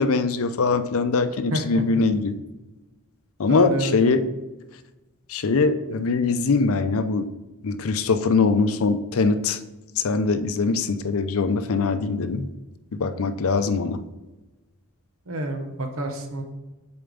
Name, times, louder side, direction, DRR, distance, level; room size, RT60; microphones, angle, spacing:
voice 1, 0.0-2.4 3.4-4.3 5.3-7.3 7.6-9.6 10.0-12.5 12.9-14.0, left 4 dB, 65° left, 10 dB, 0.5 m, -22 dB
voice 2, 1.5-2.0 3.5-4.1 15.3-16.4, right 1 dB, 65° right, 4 dB, 1.1 m, -29 dB
6.8 x 4.4 x 3.8 m, 1.1 s
head